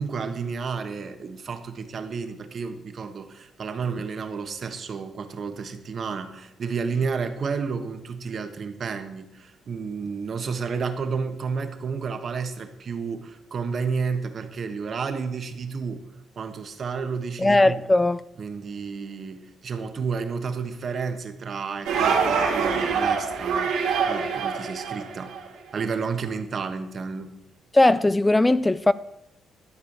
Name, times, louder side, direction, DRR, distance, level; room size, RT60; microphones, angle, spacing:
voice 1, 0.0-16.0 16.4-17.8 18.4-25.3 25.7-27.4, right 5 dB, 50° right, 1.4 m, -31 dB
voice 2, 17.4-18.2 27.7-28.9, left 2 dB, 15° left, 0.3 m, -18 dB
sound 1, 21.9-25.5, right 5 dB, 85° right, 2.5 m, -25 dB
12.5 x 4.9 x 8.7 m
cardioid pair, 90°, 0 cm